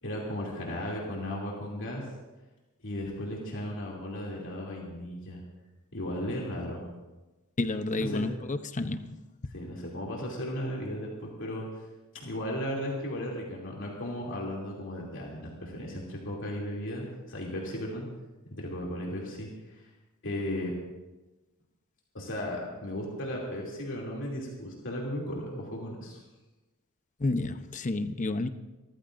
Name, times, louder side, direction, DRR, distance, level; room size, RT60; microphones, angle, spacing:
voice 1, 0.0-2.1 2.8-5.4 5.9-6.8 8.0-8.2 9.5-11.8 12.1-18.1 18.6-19.9 20.2-20.7 22.1-26.2, left 1 dB, 60° left, -3 dB, 2.8 m, -35 dB
voice 2, 7.6-9.2 27.2-28.5, left 2 dB, 35° left, 9 dB, 0.7 m, -30 dB
27.5 x 14.5 x 2.6 m, 1.1 s
head